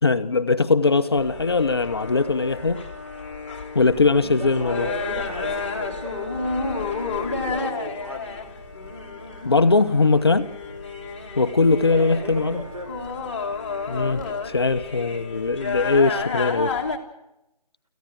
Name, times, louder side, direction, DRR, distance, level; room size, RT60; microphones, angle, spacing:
voice 1, 0.0-2.8 3.7-4.9 9.4-10.5 11.4-12.6 13.9-16.7, left 3 dB, 40° left, 9 dB, 0.9 m, -20 dB
sound 1, 1.2-17.0, left 4 dB, 15° left, 1.5 m, -31 dB
voice 2, 4.0-8.5 11.8-13.0, right 1 dB, 60° right, 6 dB, 5.5 m, -36 dB
Water tap faucet / Drip, 4.1-14.3, right 2 dB, 30° right, 7.8 m, -47 dB
27.0 x 15.0 x 7.6 m, 0.91 s
figure-of-eight pair, 165°, 21 cm